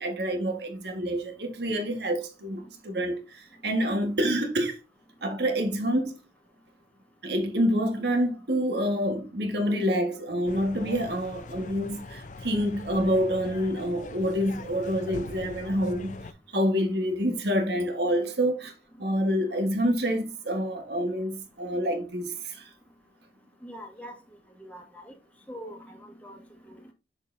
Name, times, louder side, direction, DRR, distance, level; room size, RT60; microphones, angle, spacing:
voice 1, 0.0-4.8 5.2-6.2 7.2-16.2 16.5-18.7 19.0-22.7, equal, 65° right, 1.5 m, -27 dB
sound 1, 10.5-16.3, left 3 dB, 45° left, 0.6 m, -41 dB
voice 2, 23.6-24.1 24.6-25.1 25.5-26.4, equal, 10° left, 1.6 m, -43 dB
7.2 x 6.6 x 2.6 m
head